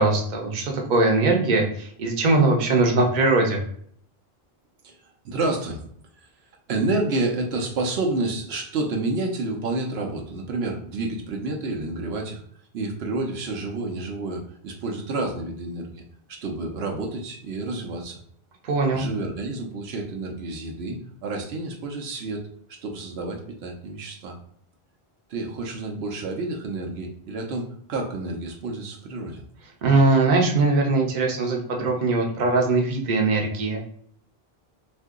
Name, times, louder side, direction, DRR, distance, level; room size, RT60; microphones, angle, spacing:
voice 1, 0.0-3.6 18.6-19.1 29.8-33.8, right 3 dB, 55° right, 1 dB, 0.7 m, -21 dB
voice 2, 4.8-5.8 6.7-12.4 12.7-16.0 16.3-18.2 18.9-22.4 22.7-24.4 25.3-29.4, right 2 dB, 80° right, 2 dB, 0.9 m, -29 dB
2.7 x 2.6 x 3.6 m, 0.63 s
omnidirectional pair, 1.0 m